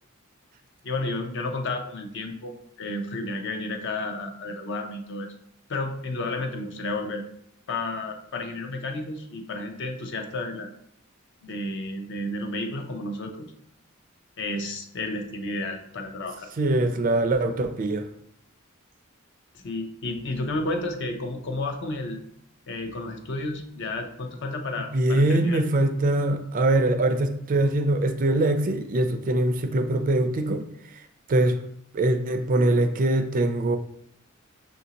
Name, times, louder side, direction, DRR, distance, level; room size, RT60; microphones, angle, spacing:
voice 1, 0.8-5.3 5.7-7.2 7.7-10.7 11.4-13.5 14.4-16.5 19.6-22.2 22.7-25.6, left 2 dB, 60° left, 4 dB, 0.6 m, -32 dB
voice 2, 16.6-18.1 24.9-30.6 31.3-31.5 31.9-33.8, right 1 dB, 40° right, 7 dB, 0.4 m, -23 dB
5.7 x 2.6 x 2.8 m, 0.72 s
head